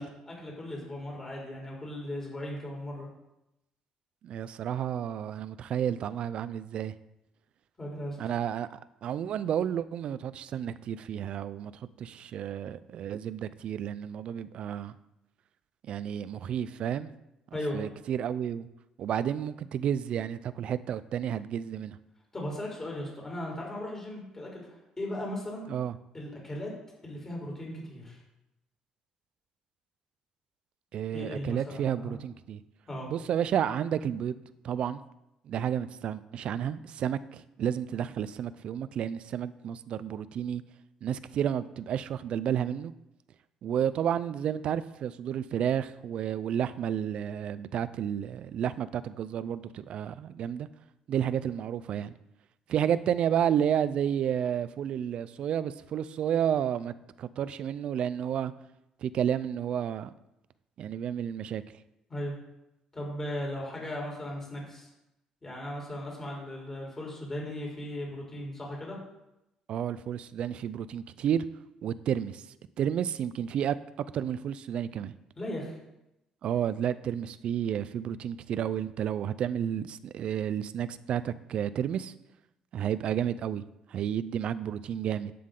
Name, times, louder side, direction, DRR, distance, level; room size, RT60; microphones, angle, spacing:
voice 1, 0.0-3.1 7.8-8.2 17.5-17.9 22.3-25.6 26.1-26.7 27.0-28.2 31.1-32.2 32.9-33.1 62.1-62.3 62.9-64.9 65.4-69.0 75.4-75.8, left 1 dB, 20° left, -2 dB, 4.1 m, -37 dB
voice 2, 4.2-6.9 8.2-14.9 15.8-17.1 17.7-18.7 19.0-22.0 25.7-25.9 30.9-32.6 33.1-35.0 35.5-40.6 41.0-42.9 43.6-50.7 51.1-52.1 52.7-58.5 59.0-60.1 60.8-61.6 69.7-71.4 71.8-72.4 72.8-73.8 74.1-75.1 76.4-82.1 82.7-83.6 83.9-85.3, right 9 dB, 60° right, 15 dB, 0.5 m, -31 dB
11.0 x 8.5 x 3.9 m, 0.88 s
cardioid pair, 105°, 2 cm